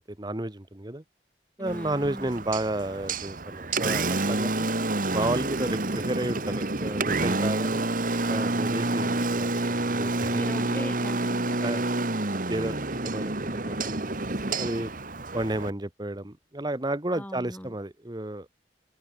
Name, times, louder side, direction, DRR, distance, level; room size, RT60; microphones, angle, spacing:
voice 1, 0.1-1.0 1.6-4.7 5.1-7.8 8.3-10.4 11.6-11.8 12.5-14.1 14.5-14.9 15.3-18.5, right 1 dB, 25° right, 1.3 m, -32 dB
voice 2, 1.6-2.4 8.9-9.2 9.5-9.9 10.3-11.6 12.6-12.8 17.1-17.8, equal, 10° left, 4.7 m, -40 dB
Engine, 1.7-15.7, right 2 dB, 50° right, 2.0 m, -28 dB
open air
head